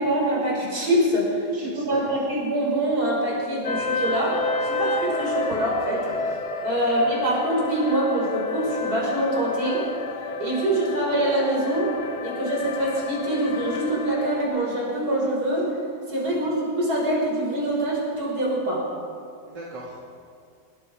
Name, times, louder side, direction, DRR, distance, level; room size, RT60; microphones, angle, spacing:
voice 1, 0.0-6.2 6.6-9.9 10.4-12.0 12.2-15.7 16.1-18.8, right 1 dB, 60° right, -3 dB, 6.3 m, -24 dB
voice 2, 1.5-2.1 6.8-6.9 16.3-16.4 19.4-20.1, right 1 dB, 85° right, -4 dB, 3.5 m, -40 dB
sound 1, 3.6-14.4, left 3 dB, 70° left, 2.1 m, -30 dB
29.5 x 21.0 x 5.1 m, 2.3 s
omnidirectional pair, 1.9 m